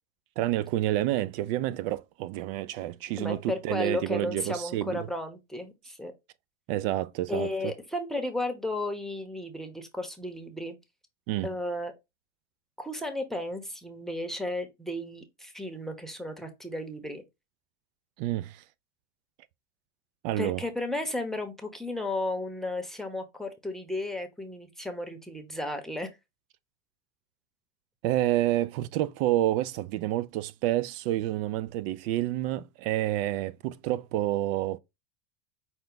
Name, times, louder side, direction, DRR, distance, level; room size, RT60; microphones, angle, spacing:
voice 1, 0.4-5.1 6.7-7.7 11.3-11.5 18.2-18.6 20.2-20.6 28.0-34.8, right 14 dB, 55° right, 0.5 m, -29 dB
voice 2, 3.2-6.1 7.3-10.8 11.4-11.9 12.8-17.2 20.4-26.1, left 1 dB, ahead, 0.9 m, -34 dB
5.6 x 2.3 x 3.8 m
supercardioid pair, 110°, 34 cm